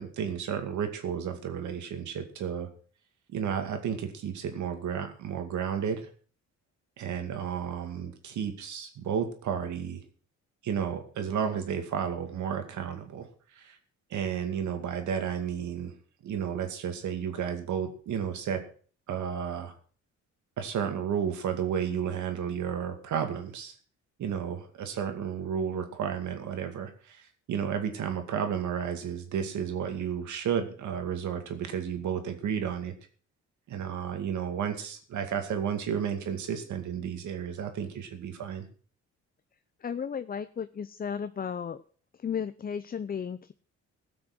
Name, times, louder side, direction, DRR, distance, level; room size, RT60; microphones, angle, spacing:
voice 1, 0.0-2.7 3.3-6.1 7.0-10.0 10.6-13.8 14.1-15.9 16.2-18.6 19.1-19.7 20.6-23.7 24.2-32.9 33.7-38.7, right 8 dB, 75° right, 6 dB, 2.3 m, -32 dB
voice 2, 39.8-41.8 42.2-43.5, left 7 dB, 30° left, 12 dB, 0.6 m, -34 dB
16.0 x 6.3 x 6.0 m, 0.44 s
cardioid pair, 90°, 30 cm